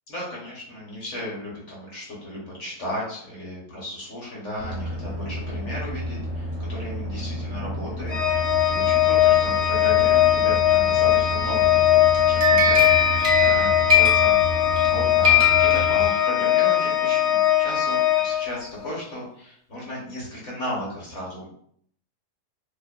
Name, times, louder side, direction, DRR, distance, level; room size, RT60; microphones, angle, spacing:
voice 1, 0.1-12.0 12.3-12.9 13.4-14.3 14.9-21.5, left 1 dB, 55° left, -5 dB, 1.1 m, -35 dB
sound 1, 4.6-16.1, equal, 35° left, 0.7 m, -31 dB
Organ, 8.1-19.0, left 12 dB, 90° left, 1.2 m, -20 dB
sound 2, 12.1-14.9 15.2-16.5, left 5 dB, 85° right, 0.4 m, -21 dB
2.9 x 2.2 x 2.2 m, 0.64 s
omnidirectional pair, 1.7 m